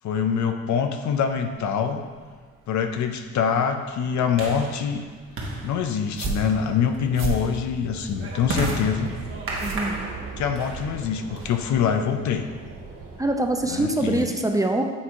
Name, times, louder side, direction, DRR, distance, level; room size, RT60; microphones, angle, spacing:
voice 1, 0.0-2.0 2.7-5.0 5.6-9.1 10.4-12.5 13.7-14.4, left 7 dB, 70° left, 6 dB, 0.6 m, -24 dB
sound 1, 1.7-12.1, right 2 dB, 45° right, 1.3 m, -35 dB
sound 2, 6.0-10.5, right 5 dB, 60° right, 1.4 m, -34 dB
sound 3, 6.1-14.3, right 3 dB, 90° right, 1.7 m, -40 dB
voice 2, 9.6-10.0 13.2-14.8, right 1 dB, 10° right, 3 dB, 0.5 m, -24 dB
8.4 x 2.8 x 4.6 m, 1.5 s
cardioid pair, 90°, 30 cm